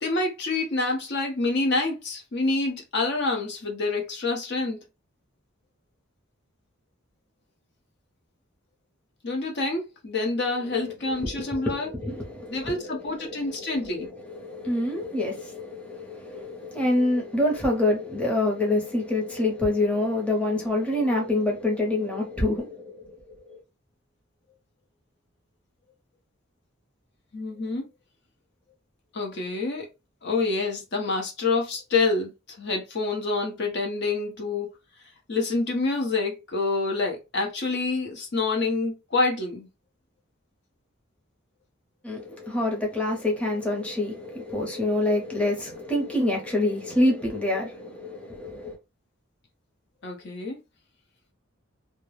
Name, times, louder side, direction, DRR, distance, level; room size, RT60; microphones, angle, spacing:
voice 1, 0.0-4.8 9.2-11.9 12.5-14.1 27.3-27.9 29.1-29.9 30.2-34.7 35.3-39.7 50.0-50.6, left 3 dB, 55° left, 0.7 m, -27 dB
voice 2, 10.7-13.0 13.2-23.1 42.0-48.8, left 1 dB, 5° left, 0.7 m, -27 dB
2.3 x 2.1 x 3.2 m
head